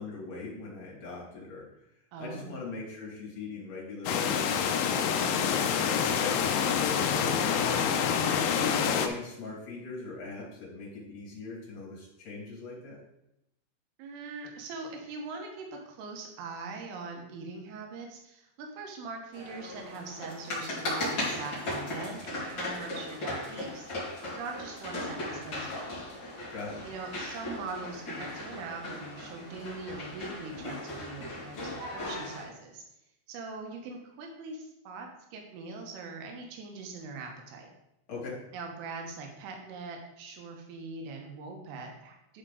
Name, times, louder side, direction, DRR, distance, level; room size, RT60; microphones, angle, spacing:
voice 1, 0.0-1.6 2.2-7.7 8.5-13.0 26.5-26.8 38.1-38.4, left 3 dB, 45° left, -5 dB, 3.5 m, -40 dB
voice 2, 2.1-2.6 8.2-8.6 14.0-23.9 24.3-26.0 26.9-32.8 33.3-37.7 38.5-42.4, right 4 dB, 85° right, 2 dB, 3.9 m, -42 dB
sound 1, 4.1-9.1, left 7 dB, 85° left, 3.0 m, -27 dB
sound 2, 19.3-32.4, left 1 dB, 30° left, 2.6 m, -37 dB
11.5 x 5.5 x 3.9 m, 0.86 s
omnidirectional pair, 5.7 m